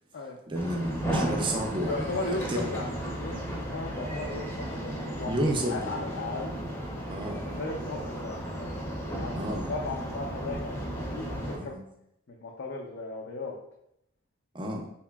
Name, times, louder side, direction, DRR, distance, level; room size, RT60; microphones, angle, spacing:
sound 1, 0.5-11.6, equal, 10° left, 0.7 m, -34 dB
voice 1, 0.5-2.7 5.3-6.1 7.1-7.5 9.4-9.7 11.6-11.8 14.5-14.9, right 1 dB, 25° right, 2 dB, 0.5 m, -31 dB
voice 2, 1.8-5.3 5.7-6.6 7.6-8.5 9.0-11.7 12.3-13.6, left 3 dB, 55° left, -1 dB, 0.4 m, -36 dB
4.0 x 2.8 x 2.3 m, 0.77 s
head